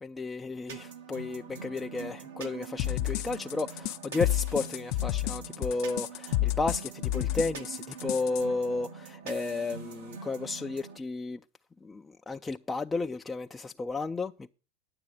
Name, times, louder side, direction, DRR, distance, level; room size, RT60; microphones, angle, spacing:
voice 1, 0.0-11.4 11.8-14.5, left 3 dB, 15° left, 0.4 m, -33 dB
sound 1, 0.7-11.0, right 6 dB, 80° right, 1.3 m, -44 dB
sound 2, 2.8-8.4, left 15 dB, 60° left, 0.7 m, -30 dB
9.7 x 6.8 x 6.3 m
hypercardioid pair, 110°, 0 cm